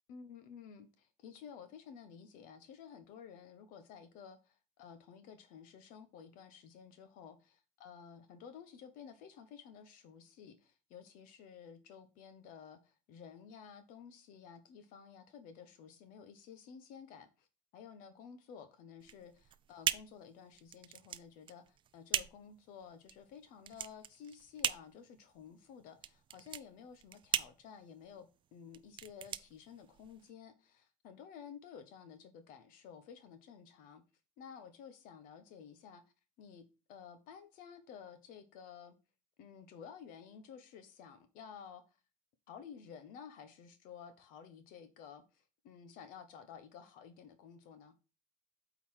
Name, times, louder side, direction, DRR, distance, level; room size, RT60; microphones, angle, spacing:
voice 1, 0.1-17.5 17.7-28.3 28.5-34.0 34.4-36.0 36.4-38.9 39.4-42.0 42.5-47.9, left 7 dB, 65° left, 1.0 m, -53 dB
sound 1, 19.0-30.3, right 10 dB, 35° right, 0.4 m, -40 dB
8.3 x 4.0 x 4.3 m
supercardioid pair, 110°, 15 cm